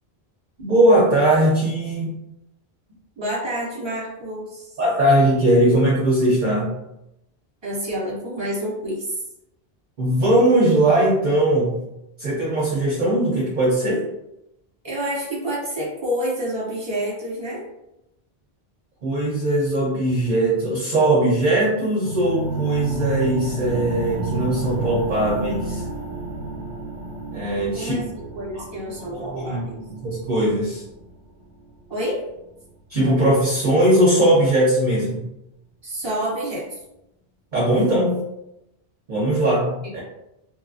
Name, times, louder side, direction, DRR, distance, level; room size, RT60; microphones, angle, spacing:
voice 1, 0.6-2.1 4.8-6.7 10.0-11.8 12.2-14.0 19.0-25.8 27.3-28.0 29.1-30.8 32.9-35.2 37.5-38.2 39.1-40.0, right 1 dB, 55° right, -5 dB, 0.7 m, -19 dB
voice 2, 3.2-4.7 7.6-9.2 14.8-17.6 27.7-28.0 28.3-29.8 31.9-32.2 35.8-36.8, equal, 25° right, -6 dB, 1.1 m, -28 dB
sound 1, 22.0-32.0, right 3 dB, 85° left, 1.5 m, -30 dB
2.8 x 2.3 x 2.5 m, 0.86 s
omnidirectional pair, 1.1 m